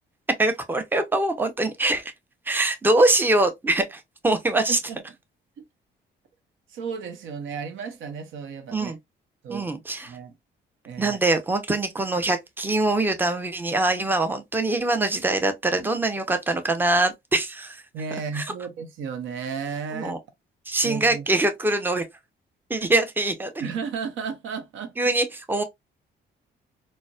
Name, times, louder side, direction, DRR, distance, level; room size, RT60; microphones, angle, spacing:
voice 1, 0.4-2.1 2.5-4.8 8.7-9.0 9.5-10.1 11.0-17.8 18.3-18.5 19.9-20.2 20.7-22.1 22.7-23.5 25.0-25.6, right 2 dB, 10° right, 0.6 m, -23 dB
voice 2, 4.7-5.0 5.6-5.7 6.7-8.9 9.4-9.7 10.1-10.3 10.8-11.2 17.9-20.1 20.8-21.3 23.6-25.0, right 6 dB, 80° right, 0.7 m, -33 dB
3.9 x 2.1 x 2.2 m
cardioid pair, 90°, 20 cm